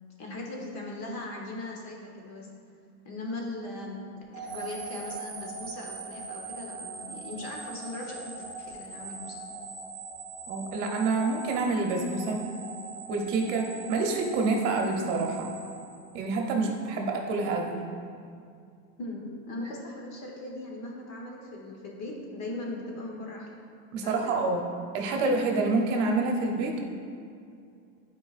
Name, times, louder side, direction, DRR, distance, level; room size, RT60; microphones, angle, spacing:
voice 1, 0.2-2.5 3.0-9.5 19.0-23.5 24.0-24.4, left 2 dB, 35° left, -1 dB, 1.1 m, -39 dB
sound 1, 4.3-16.5, right 4 dB, 20° right, 0.4 m, -41 dB
voice 2, 10.5-12.4 13.1-15.5 16.1-17.9 23.9-24.6 24.9-26.8, right 3 dB, 55° right, 2 dB, 1.0 m, -27 dB
9.8 x 4.7 x 2.5 m, 2.4 s
supercardioid pair, 155°, 43 cm